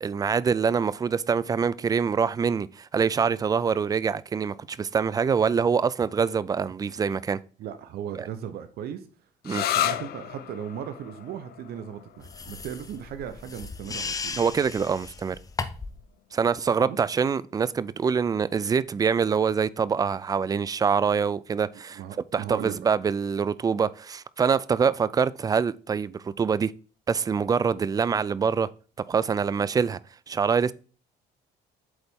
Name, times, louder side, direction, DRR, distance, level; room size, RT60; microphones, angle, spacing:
voice 1, 0.0-7.4 8.2-8.3 9.5-9.6 14.4-15.4 16.3-22.0 22.3-26.7 27.1-28.7 29.1-30.0 30.3-30.7, right 6 dB, 20° right, 0.3 m, -25 dB
voice 2, 7.6-9.0 9.5-14.5 16.8-17.0 21.9-22.9, right 9 dB, 70° right, 0.8 m, -37 dB
sound 1, 9.4-16.8, left 11 dB, 65° left, 0.6 m, -35 dB
sound 2, 12.2-16.0, left 4 dB, 20° left, 0.6 m, -36 dB
7.9 x 4.0 x 3.6 m
cardioid pair, 110°, 17 cm